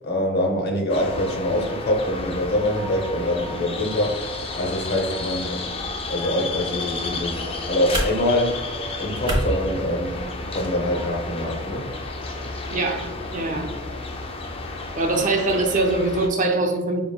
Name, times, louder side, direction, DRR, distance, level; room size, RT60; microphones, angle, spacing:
voice 1, 0.0-4.2 4.6-5.8 6.1-8.6 9.0-10.2 10.5-11.9, left 1 dB, 55° left, 1 dB, 0.7 m, -24 dB
sound 1, 0.9-16.3, left 3 dB, 30° left, 0.4 m, -32 dB
sound 2, 6.8-10.8, right 1 dB, 25° right, 0.9 m, -31 dB
voice 2, 12.7-13.7 15.0-17.0, right 2 dB, 40° right, 3 dB, 0.5 m, -23 dB
4.9 x 2.9 x 2.3 m, 1.1 s
head